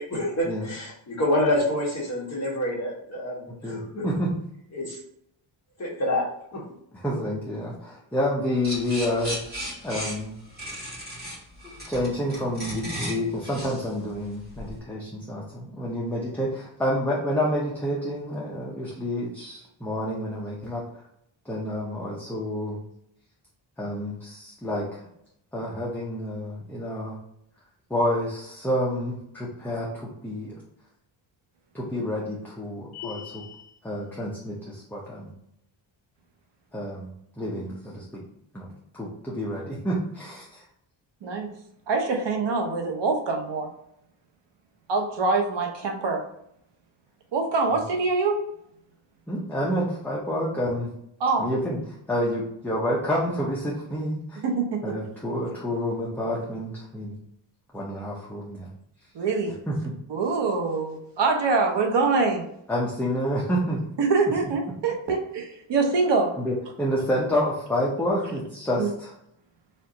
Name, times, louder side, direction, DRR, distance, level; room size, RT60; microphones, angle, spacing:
voice 1, 0.0-4.0 4.7-5.0 5.8-6.6 37.4-37.6, left 1 dB, 35° left, -3 dB, 1.2 m, -27 dB
voice 2, 3.5-4.3 6.9-9.4 9.8-10.4 11.9-21.0 21.4-22.8 23.8-25.0 25.5-27.2 27.9-30.6 31.7-33.4 33.8-35.3 36.7-38.2 38.5-40.6 49.3-50.9 51.4-54.4 54.8-57.2 57.7-58.7 59.7-59.9 62.7-63.8 66.4-69.1, equal, 5° left, -5 dB, 0.5 m, -29 dB
sound 1, 8.6-14.8, equal, 20° right, 1.2 m, -35 dB
sound 2, 32.9-33.8, left 10 dB, 85° left, 0.6 m, -40 dB
voice 3, 41.9-43.7 44.9-46.2 47.3-48.4 51.2-51.5 54.4-54.9 59.1-59.6 60.1-62.4 64.0-66.3 68.8-68.9, right 4 dB, 60° right, 3 dB, 0.8 m, -24 dB
4.3 x 2.5 x 3.8 m, 0.75 s
wide cardioid pair, 165°, 47 cm